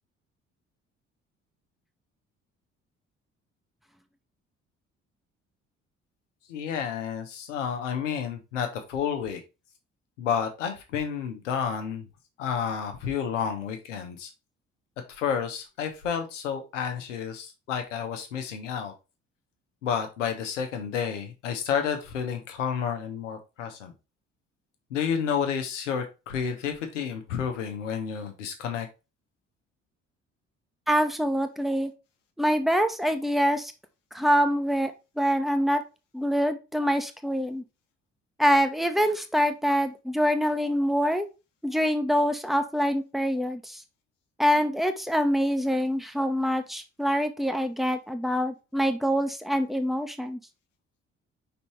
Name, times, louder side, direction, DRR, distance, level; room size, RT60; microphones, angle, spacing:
voice 1, 6.5-9.4 10.2-12.1 12.4-14.3 15.1-18.9 19.8-23.9 24.9-28.9, left 7 dB, 80° left, 6 dB, 1.3 m, -30 dB
voice 2, 30.9-31.9 32.4-33.7 34.1-34.9 35.2-35.8 36.1-37.6 38.4-41.3 41.6-43.8 44.4-50.4, equal, ahead, 7 dB, 1.1 m, -25 dB
5.5 x 4.1 x 4.5 m, 0.28 s
figure-of-eight pair, 45°, 36 cm